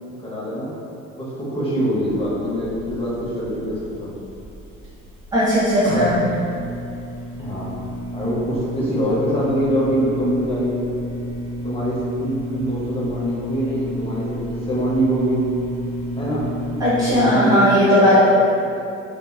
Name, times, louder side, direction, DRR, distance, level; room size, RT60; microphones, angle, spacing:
voice 1, 0.2-0.7 1.2-4.1 7.4-7.7 8.1-10.8 11.6-15.4 16.2-16.5 17.0-18.3, right 1 dB, 15° left, -7 dB, 0.7 m, -24 dB
sound 1, 2.0-17.2, equal, 30° right, 0.9 m, -31 dB
voice 2, 5.3-6.2 16.8-18.3, equal, 10° right, -9 dB, 0.4 m, -16 dB
2.7 x 2.5 x 2.2 m, 2.7 s
figure-of-eight pair, 50°, 42 cm